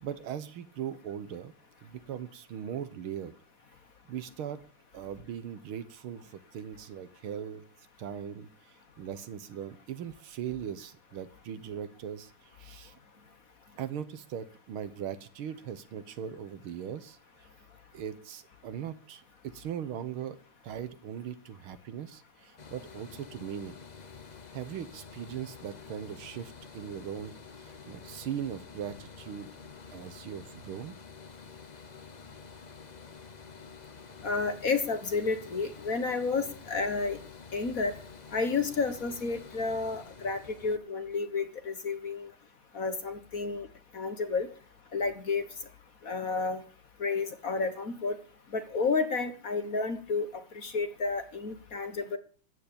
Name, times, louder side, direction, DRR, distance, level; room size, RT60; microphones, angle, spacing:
voice 1, 0.0-1.5 1.8-3.3 4.1-4.6 4.9-7.6 8.0-8.5 9.0-12.9 13.8-17.2 17.9-20.4 20.6-23.8 24.5-29.5 29.9-31.0, right 9 dB, 75° right, 13 dB, 1.9 m, -39 dB
sound 1, 22.6-40.8, left 5 dB, 70° left, 0.4 m, -49 dB
voice 2, 34.2-37.2 37.5-37.9 38.3-42.3 42.7-43.7 43.9-44.5 44.9-45.5 46.0-46.6 47.0-48.2 48.5-52.2, left 4 dB, 45° left, 9 dB, 1.6 m, -31 dB
14.0 x 9.3 x 8.8 m, 0.42 s
omnidirectional pair, 2.4 m